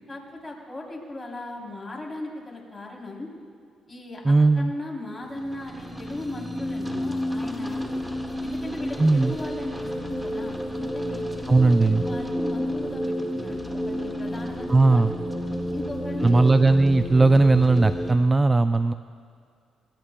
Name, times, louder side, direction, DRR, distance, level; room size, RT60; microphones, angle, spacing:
voice 1, 0.1-3.3 3.9-7.9 8.4-13.6 13.9-15.0 15.7-16.6, left 2 dB, 20° left, -2 dB, 3.2 m, -37 dB
voice 2, 4.2-4.7 9.0-9.4 11.5-12.0 14.7-15.1 16.2-18.9, right 3 dB, 20° right, 10 dB, 0.3 m, -18 dB
sound 1, 5.3-18.1, equal, 5° right, 1.7 m, -31 dB
23.5 x 19.5 x 2.2 m, 2.3 s
cardioid pair, 90°, 0 cm